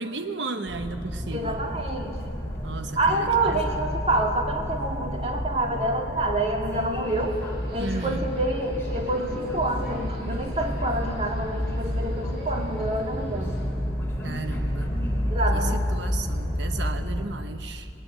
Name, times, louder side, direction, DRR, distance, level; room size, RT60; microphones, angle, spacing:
voice 1, 0.0-1.6 2.6-3.7 7.8-8.2 14.2-14.9 15.5-17.9, right 3 dB, 90° right, 8 dB, 1.0 m, -34 dB
sound 1, 0.7-17.3, equal, 15° left, 3.7 m, -30 dB
voice 2, 1.3-2.2 3.0-7.4 7.7-13.6 15.2-15.8, right 2 dB, 35° right, 2 dB, 2.1 m, -27 dB
Subway metro underground, 7.0-13.6, equal, 65° right, 6.3 m, -43 dB
19.5 x 18.0 x 8.5 m, 2.5 s
head